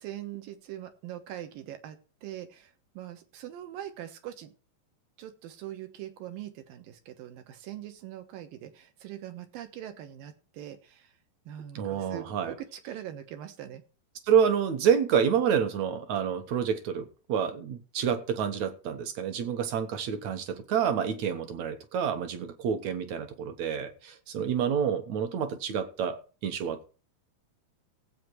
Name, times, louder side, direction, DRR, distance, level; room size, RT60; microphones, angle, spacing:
voice 1, 0.0-4.5 5.2-11.1 11.5-13.8, right 12 dB, 85° right, 3.0 m, -42 dB
voice 2, 11.8-12.5 14.3-26.9, right 7 dB, 65° right, 2.1 m, -28 dB
16.5 x 8.1 x 4.6 m
omnidirectional pair, 4.0 m